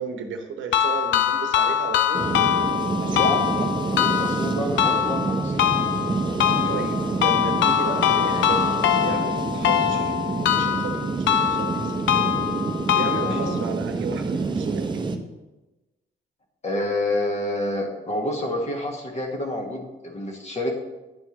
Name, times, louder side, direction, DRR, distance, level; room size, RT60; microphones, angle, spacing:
voice 1, 0.0-2.2 3.0-3.3 6.7-10.1 10.5-11.2 11.4-12.0 12.9-15.0, right 5 dB, 75° right, 5 dB, 0.8 m, -33 dB
sound 1, 0.7-13.7, left 10 dB, 70° left, 0.4 m, -23 dB
sound 2, 2.1-15.2, right 4 dB, 25° right, 0.6 m, -27 dB
voice 2, 3.2-3.6 4.0-5.6 13.2-13.5 16.6-20.7, left 1 dB, 35° left, 1 dB, 1.4 m, -28 dB
9.7 x 4.4 x 2.9 m, 1.1 s
cardioid pair, 90°, 20 cm